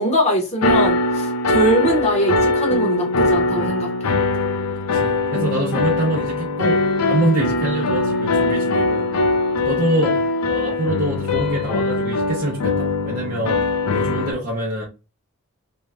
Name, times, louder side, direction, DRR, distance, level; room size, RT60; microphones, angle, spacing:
voice 1, 0.0-4.1, right 1 dB, 30° left, 0.9 m, -21 dB
sound 1, 0.6-14.3, left 2 dB, 80° left, 0.5 m, -21 dB
voice 2, 4.9-9.1 9.6-10.2 10.5-13.7 13.9-14.8, right 1 dB, 40° right, 0.6 m, -25 dB
2.7 x 2.2 x 3.0 m
head